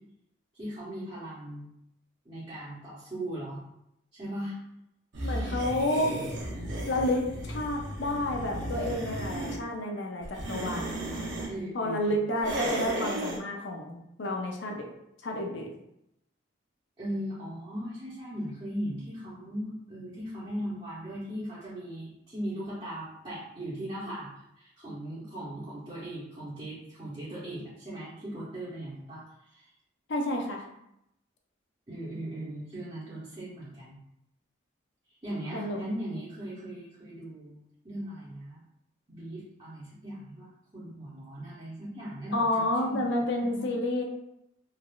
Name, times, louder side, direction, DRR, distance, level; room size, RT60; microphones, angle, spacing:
voice 1, 0.5-1.7 2.2-3.6 4.1-4.6 11.5-12.8 17.0-24.3 24.6-29.7 31.9-34.0 35.2-38.6 39.1-43.1 43.4-43.7, right 1 dB, 25° right, -10 dB, 0.7 m, -38 dB
sound 1, 5.1-9.6 10.2-11.5 12.4-13.4, right 1 dB, 65° right, 0.7 m, -34 dB
voice 2, 5.2-6.2 6.9-11.0 11.7-14.9 15.2-15.7 30.1-30.7 35.5-35.8 42.3-44.0, left 1 dB, 65° left, 1 dB, 0.5 m, -30 dB
3.3 x 2.4 x 2.3 m, 0.81 s
head